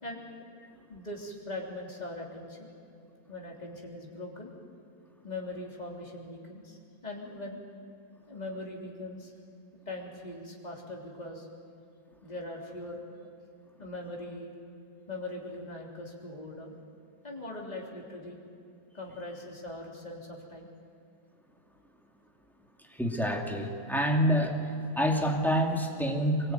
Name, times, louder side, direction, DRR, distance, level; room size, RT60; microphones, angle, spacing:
voice 1, 0.9-2.7 3.3-4.5 5.2-7.6 8.3-9.3 9.9-11.5 12.2-13.0 13.8-14.5 15.1-16.8 17.2-18.4 18.9-20.7, left 2 dB, 25° left, -1 dB, 3.6 m, -41 dB
voice 2, 22.9-24.7 25.0-26.5, equal, ahead, 1 dB, 2.6 m, -27 dB
24.5 x 22.5 x 9.2 m, 2.7 s
omnidirectional pair, 1.7 m